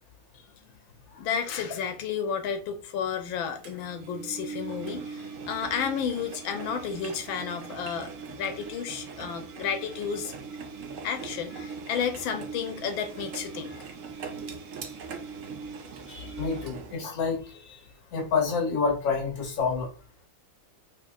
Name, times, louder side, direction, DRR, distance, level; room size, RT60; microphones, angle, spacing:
voice 1, 1.2-10.3 11.0-13.9, left 7 dB, 90° left, 1.5 m, -32 dB
Engine, 3.6-17.1, right 5 dB, 85° right, 0.7 m, -40 dB
voice 2, 16.1-17.8 18.1-19.9, left 5 dB, 70° left, 1.9 m, -28 dB
4.6 x 3.1 x 2.3 m
omnidirectional pair, 2.1 m